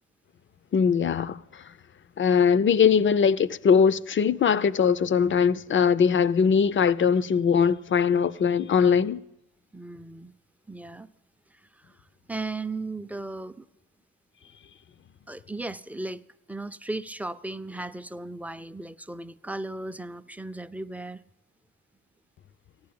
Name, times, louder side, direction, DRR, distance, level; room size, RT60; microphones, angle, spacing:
voice 1, 0.7-1.4 2.2-9.2, left 6 dB, 40° left, 0.6 m, -21 dB
voice 2, 9.7-10.3 10.7-11.1 11.5-12.0 12.3-13.7 15.3-16.2 16.5-21.2, right 2 dB, 5° right, 0.5 m, -36 dB
14.5 x 10.5 x 8.7 m
cardioid pair, 85°, 31 cm